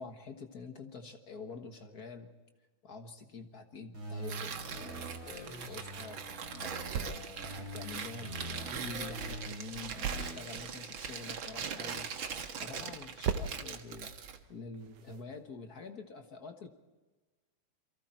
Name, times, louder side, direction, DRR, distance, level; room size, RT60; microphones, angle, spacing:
voice 1, 0.0-2.3 2.8-6.2 6.6-12.2 12.5-14.1 14.5-16.7, left 4 dB, 45° left, 5 dB, 1.2 m, -47 dB
sound 1, 3.9-6.9 7.4-10.4, right 1 dB, 30° right, 6.2 m, -45 dB
Tearing, 4.2-14.4, right 6 dB, 50° right, 1.7 m, -41 dB
sound 2, 5.3-15.9, right 7 dB, 75° right, 2.4 m, -44 dB
28.0 x 23.5 x 4.5 m, 1.2 s
omnidirectional pair, 3.5 m